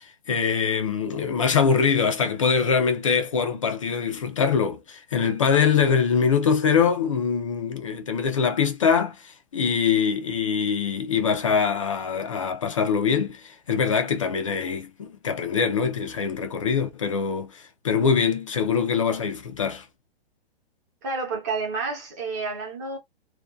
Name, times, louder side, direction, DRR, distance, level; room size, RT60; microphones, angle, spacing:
voice 1, 0.0-19.9, left 6 dB, 35° left, 0.4 m, -23 dB
voice 2, 21.0-23.0, right 4 dB, 15° right, 0.6 m, -30 dB
2.6 x 2.2 x 2.2 m
hypercardioid pair, 175°, 29 cm